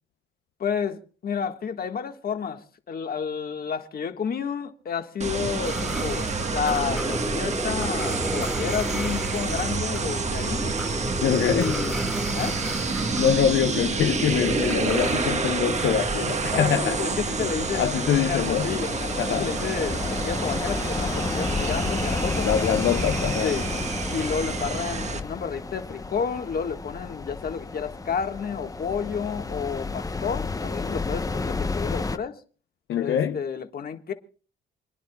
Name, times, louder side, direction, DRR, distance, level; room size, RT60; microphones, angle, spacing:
voice 1, 0.6-10.7 11.3-12.0 12.3-12.6 16.5-22.5 23.4-23.7 24.1-32.4 33.0-34.1, left 6 dB, 50° left, 1.6 m, -31 dB
sound 1, 5.2-25.2, right 4 dB, 35° right, 1.4 m, -28 dB
sound 2, 5.6-13.5 13.8-18.5 18.7-24.9, equal, ahead, 1.5 m, -36 dB
voice 2, 11.2-11.8 13.2-17.4 17.7-18.7 19.2-19.5 22.4-23.5 32.9-33.4, left 9 dB, 70° left, 0.8 m, -24 dB
sound 3, 17.4-32.2, left 3 dB, 15° left, 0.8 m, -31 dB
28.5 x 10.5 x 2.3 m
cardioid pair, 90°, 20 cm